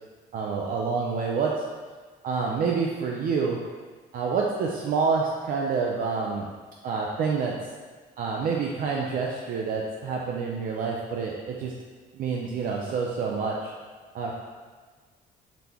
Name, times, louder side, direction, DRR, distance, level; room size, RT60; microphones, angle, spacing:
voice 1, 0.3-1.5 2.2-3.6 4.1-6.5 6.8-7.5 8.2-11.7 12.1-13.7 14.1-14.3, right 5 dB, 55° right, -2 dB, 0.5 m, -27 dB
4.0 x 2.9 x 3.4 m, 1.4 s
cardioid pair, 110°, 17 cm